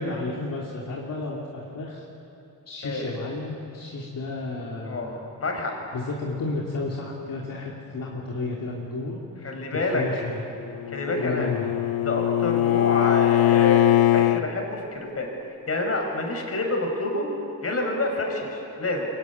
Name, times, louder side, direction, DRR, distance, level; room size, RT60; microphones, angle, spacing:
voice 1, 0.0-2.0 2.7-5.2 5.9-10.4 11.2-11.7, left 3 dB, 65° left, -3 dB, 3.0 m, -32 dB
voice 2, 5.4-5.9 9.4-10.0 10.9-11.5 12.0-15.3 15.7-17.3 17.6-19.2, left 2 dB, 40° left, 2 dB, 5.1 m, -27 dB
Bowed string instrument, 10.6-14.4, left 14 dB, 85° left, 0.7 m, -21 dB
24.5 x 23.0 x 9.5 m, 2.8 s
wide cardioid pair, 150°, 36 cm